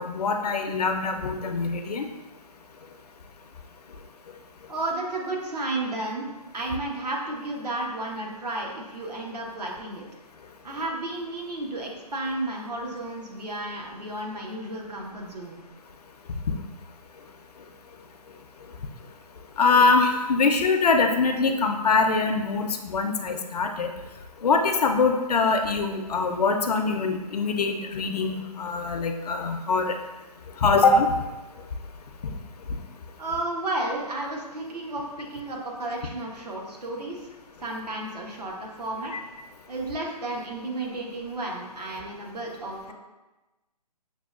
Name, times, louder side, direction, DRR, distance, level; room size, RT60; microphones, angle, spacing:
voice 1, 0.0-2.1 19.6-23.9 24.4-30.0 30.6-31.1 39.1-39.2, left 4 dB, 70° left, 5 dB, 0.5 m, -23 dB
voice 2, 4.7-6.3 6.5-10.0 10.6-15.6 33.2-37.3 37.6-39.1 39.7-42.9, right 2 dB, 70° right, -1 dB, 1.0 m, -32 dB
6.0 x 2.3 x 2.3 m, 1.1 s
hypercardioid pair, 155°, 21 cm